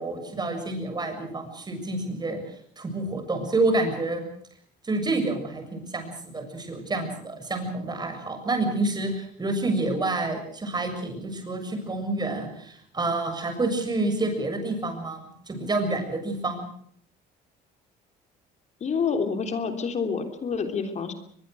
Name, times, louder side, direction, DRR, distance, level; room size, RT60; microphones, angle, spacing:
voice 1, 0.0-2.4 2.8-4.2 4.8-15.2 15.5-16.7, right 2 dB, 25° right, 6 dB, 7.1 m, -28 dB
voice 2, 18.8-21.1, left 5 dB, 45° left, 6 dB, 3.4 m, -28 dB
23.0 x 22.0 x 6.4 m, 0.62 s
cardioid pair, 110°, 17 cm